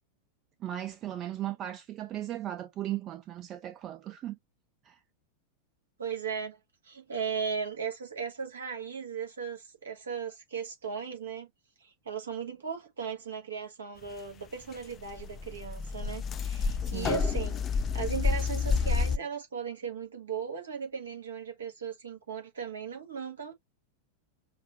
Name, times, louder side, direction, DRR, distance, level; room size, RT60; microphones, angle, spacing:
voice 1, 0.6-4.4 4.8-5.0 16.8-17.2, right 12 dB, 30° right, 0.5 m, -37 dB
voice 2, 6.0-6.6 6.8-11.5 11.8-23.5, right 6 dB, 70° right, 1.5 m, -37 dB
sound 1, 14.7-14.8 15.0-19.2, left 5 dB, 25° left, 0.4 m, -29 dB
5.9 x 2.1 x 2.9 m
figure-of-eight pair, 90°, 0 cm